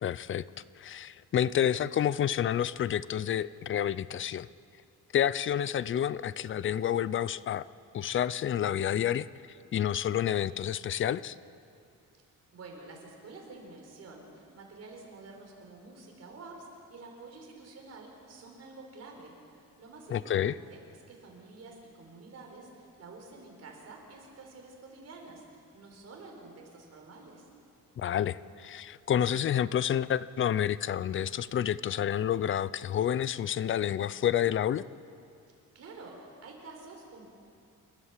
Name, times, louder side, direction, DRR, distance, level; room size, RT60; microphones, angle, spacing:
voice 1, 0.0-0.4 0.8-4.5 5.1-7.7 7.9-9.3 9.7-11.3 20.1-20.5 28.0-34.8, left 10 dB, 40° left, 18 dB, 0.4 m, -29 dB
voice 2, 12.5-20.8 21.1-27.5 35.7-37.2, right 3 dB, 50° right, 1 dB, 4.5 m, -49 dB
28.5 x 13.0 x 7.4 m, 2.5 s
cardioid pair, 165°, 33 cm